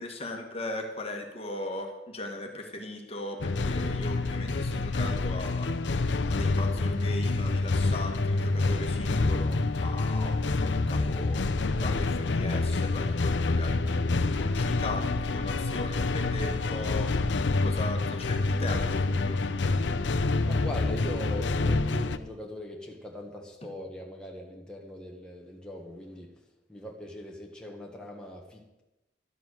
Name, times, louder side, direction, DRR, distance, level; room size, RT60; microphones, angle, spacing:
voice 1, 0.0-5.7 6.3-11.5 11.8-17.3 17.6-19.4, left 1 dB, 35° left, 3 dB, 1.6 m, -38 dB
sound 1, 3.4-22.2, left 3 dB, 85° left, 0.7 m, -27 dB
voice 2, 20.5-26.4 26.7-28.8, left 1 dB, 5° left, -1 dB, 1.4 m, -41 dB
12.5 x 9.2 x 6.3 m, 0.99 s
head